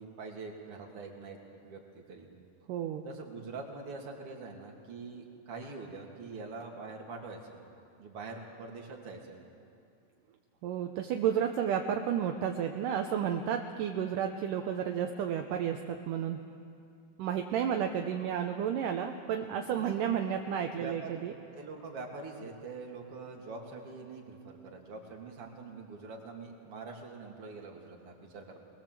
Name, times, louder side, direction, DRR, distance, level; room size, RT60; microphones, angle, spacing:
voice 1, 0.0-1.4 1.6-2.3 3.0-7.6 8.0-9.4 19.8-20.0 20.3-21.2 21.5-28.6, right 3 dB, 45° right, 0 dB, 3.0 m, -44 dB
voice 2, 2.7-3.1 10.6-16.4 17.2-21.3, right 8 dB, 75° right, 4 dB, 2.3 m, -32 dB
22.0 x 21.0 x 7.6 m, 2.5 s
omnidirectional pair, 4.1 m